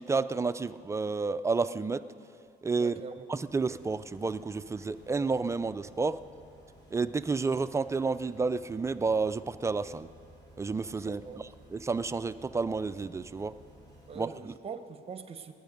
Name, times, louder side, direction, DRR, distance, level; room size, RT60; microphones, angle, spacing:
voice 1, 0.0-2.0 2.6-2.9 3.3-6.2 6.9-10.1 10.6-13.5 14.2-14.5, right 4 dB, 15° right, 13 dB, 0.3 m, -30 dB
voice 2, 2.8-3.3 11.0-11.5 11.7-11.8 14.1-15.5, right 5 dB, 35° right, 9 dB, 0.9 m, -43 dB
sound 1, 3.4-14.2, right 1 dB, 25° left, 3.7 m, -56 dB
20.0 x 9.4 x 5.2 m, 2.4 s
cardioid pair, 110°, 17 cm